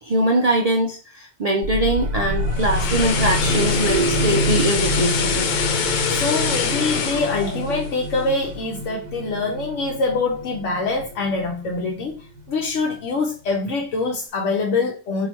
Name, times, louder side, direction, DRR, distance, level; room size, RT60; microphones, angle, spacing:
voice 1, 0.0-5.5, right 1 dB, 60° right, 0.4 m, -22 dB
sound 1, 1.6-13.0, equal, 80° right, 0.9 m, -27 dB
sound 2, 2.3-8.5 8.9-9.1, left 6 dB, 60° left, 0.5 m, -25 dB
voice 2, 5.8-12.1 12.5-15.3, left 3 dB, 90° left, 1.0 m, -24 dB
2.9 x 2.7 x 4.3 m
omnidirectional pair, 1.2 m